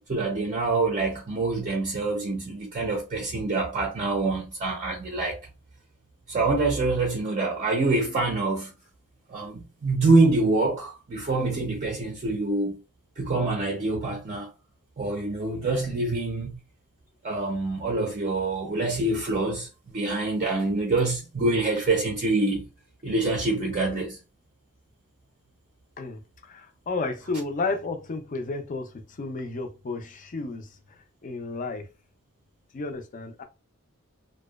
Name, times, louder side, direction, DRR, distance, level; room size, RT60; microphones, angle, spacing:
voice 1, 0.1-5.4 6.3-8.7 9.3-12.8 13.2-14.5 15.0-16.6 17.2-19.7 19.9-22.7 23.0-24.2, right 2 dB, 35° right, 0.4 m, -25 dB
voice 2, 26.0-30.8 31.2-31.9 32.7-33.4, left 3 dB, 40° left, 0.4 m, -32 dB
2.5 x 2.2 x 2.2 m
head